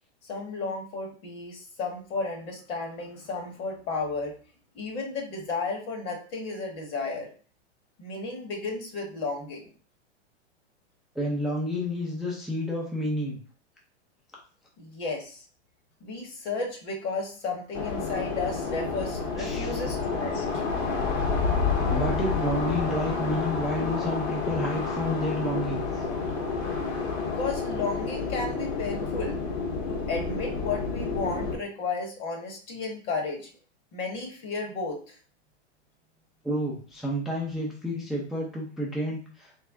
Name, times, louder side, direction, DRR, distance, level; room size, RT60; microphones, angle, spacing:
voice 1, 0.2-4.3 4.7-7.3 8.0-9.6 14.8-15.4 16.0-20.6 27.4-29.4 29.9-33.5 33.9-35.1, left 3 dB, 35° left, 2 dB, 1.2 m, -33 dB
voice 2, 11.2-13.4 19.4-19.8 21.9-26.0 36.4-39.5, left 1 dB, ahead, -3 dB, 0.4 m, -30 dB
sound 1, 17.7-31.6, left 4 dB, 65° left, 1.8 m, -29 dB
3.6 x 3.2 x 3.5 m, 0.40 s
hypercardioid pair, 140°, 34 cm